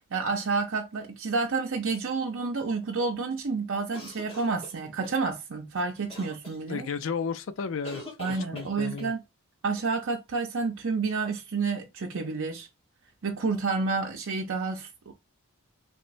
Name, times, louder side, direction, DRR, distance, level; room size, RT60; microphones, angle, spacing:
voice 1, 0.0-6.9 8.2-9.2 9.6-12.7 13.2-15.1, right 4 dB, 65° right, 0.6 m, -29 dB
sound 1, 3.9-5.2 6.1-6.6 7.8-9.1, equal, 25° left, 1.2 m, -43 dB
voice 2, 6.7-8.0 8.3-9.1, left 5 dB, 60° left, 0.4 m, -33 dB
3.1 x 3.1 x 2.5 m
head